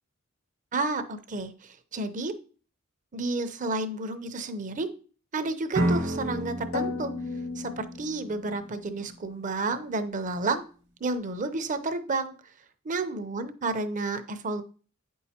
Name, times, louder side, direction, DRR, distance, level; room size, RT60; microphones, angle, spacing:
voice 1, 0.7-2.3 3.1-4.9 5.3-7.1 7.6-10.6 11.0-12.3 12.8-14.6, right 3 dB, 40° right, 9 dB, 0.6 m, -31 dB
sound 1, 5.7-8.6, right 1 dB, 60° right, 1.1 m, -31 dB
sound 2, 6.7-8.7, left 4 dB, 75° left, 0.5 m, -35 dB
8.9 x 5.5 x 2.8 m, 0.40 s
head